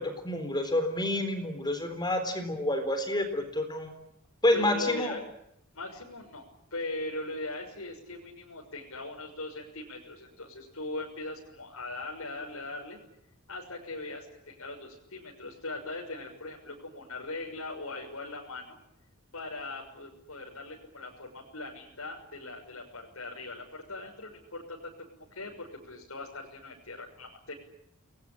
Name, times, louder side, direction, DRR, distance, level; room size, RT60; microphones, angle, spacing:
voice 1, 0.0-3.9 4.4-5.1, left 1 dB, 20° left, 8 dB, 4.0 m, -28 dB
voice 2, 4.5-5.2 5.7-13.0 13.5-18.8 19.3-27.5, left 2 dB, 80° left, -2 dB, 6.4 m, -40 dB
30.0 x 21.5 x 8.9 m, 0.79 s
head